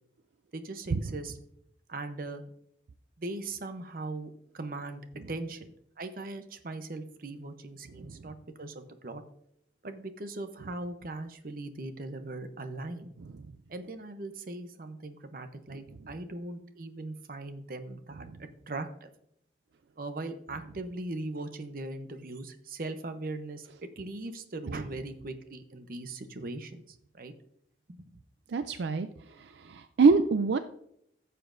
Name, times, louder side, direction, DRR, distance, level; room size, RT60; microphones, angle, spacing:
voice 1, 0.5-1.4 1.9-2.4 3.2-5.7 6.0-9.2 9.8-13.1 13.7-18.3 18.7-19.1 20.0-26.8 27.1-27.3 27.9-28.1, right 2 dB, 50° right, 9 dB, 0.8 m, -39 dB
voice 2, 28.5-29.1 29.6-30.6, right 4 dB, 80° right, 10 dB, 0.4 m, -24 dB
14.5 x 6.8 x 2.6 m, 0.72 s
head